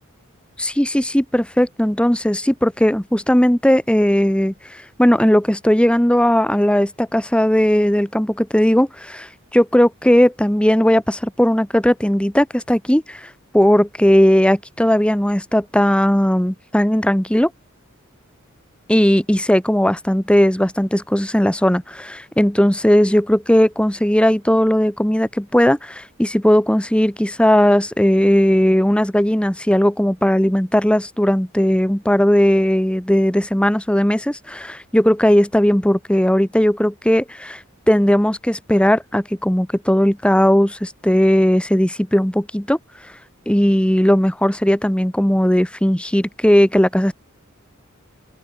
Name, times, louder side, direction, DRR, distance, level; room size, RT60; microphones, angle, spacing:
voice 1, 0.6-13.3 13.5-17.5 18.9-37.6 37.9-42.8 43.5-47.1, equal, 5° left, 1.1 m, -17 dB
open air
head